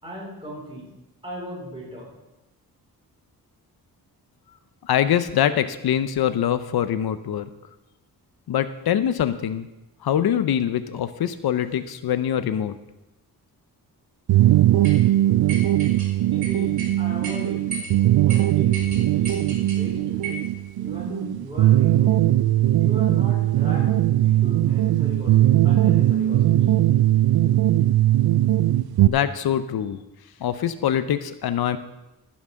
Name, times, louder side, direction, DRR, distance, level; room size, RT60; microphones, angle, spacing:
voice 1, 0.0-0.9 1.2-2.2 15.4-15.5 16.3-17.7 18.2-20.5 20.8-22.2 22.8-26.7, right 1 dB, 15° right, -4 dB, 4.8 m, -37 dB
voice 2, 4.8-7.5 8.5-9.7 10.0-12.7 29.1-30.0 30.4-31.8, left 10 dB, 85° left, 12 dB, 0.7 m, -23 dB
sound 1, 14.3-29.1, right 14 dB, 80° right, 0.5 m, -19 dB
sound 2, 14.8-15.0 15.5-16.1 16.4-16.9 17.2-17.4 17.7-17.9 18.3-18.4 18.7-19.8 20.2-20.5, right 3 dB, 50° right, 3.6 m, -35 dB
15.0 x 6.1 x 6.3 m, 0.95 s
wide cardioid pair, 130°, 36 cm